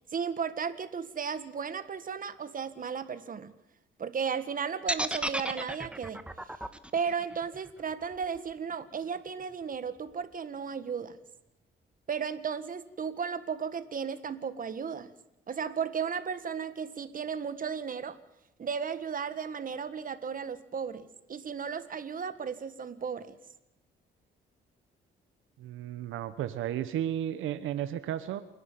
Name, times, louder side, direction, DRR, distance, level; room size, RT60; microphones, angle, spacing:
voice 1, 0.1-3.5 4.0-6.2 6.9-11.2 12.1-15.1 15.5-18.2 18.6-23.4, right 6 dB, 45° right, 12 dB, 1.7 m, -35 dB
sound 1, 4.9-8.9, right 1 dB, 5° right, 1.5 m, -34 dB
voice 2, 25.6-28.4, right 11 dB, 85° right, 11 dB, 1.1 m, -33 dB
28.0 x 11.0 x 9.1 m, 0.86 s
cardioid pair, 90°, 20 cm